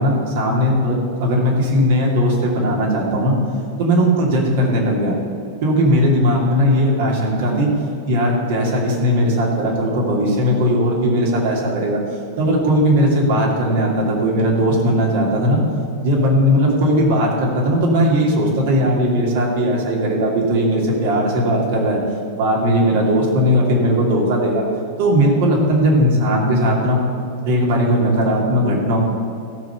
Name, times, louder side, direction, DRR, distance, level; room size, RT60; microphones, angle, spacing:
voice 1, 0.0-3.4 3.8-5.1 5.6-7.7 8.1-12.0 12.4-15.6 16.0-22.0 22.4-24.6 25.0-27.0 27.4-29.0, equal, 50° right, -2 dB, 2.7 m, -18 dB
15.0 x 6.3 x 6.8 m, 2.6 s
figure-of-eight pair, 90°, 0 cm